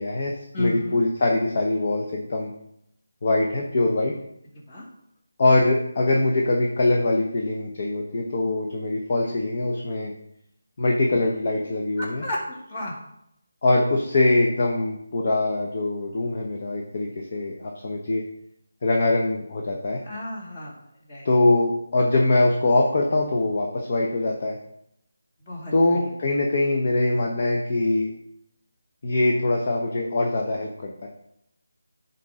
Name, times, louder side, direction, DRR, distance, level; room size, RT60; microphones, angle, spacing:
voice 1, 0.0-2.5 3.2-4.1 5.4-10.1 10.8-12.3 13.6-18.2 18.8-20.0 21.2-24.6 25.7-28.1 29.0-31.1, left 2 dB, 45° left, 0 dB, 0.9 m, -23 dB
voice 2, 0.5-1.0 4.7-4.8 12.0-13.0 20.1-20.7 21.1-21.3 25.5-25.7, left 1 dB, 30° left, -3 dB, 2.2 m, -32 dB
10.5 x 4.2 x 3.7 m, 0.78 s
figure-of-eight pair, 160°, 0 cm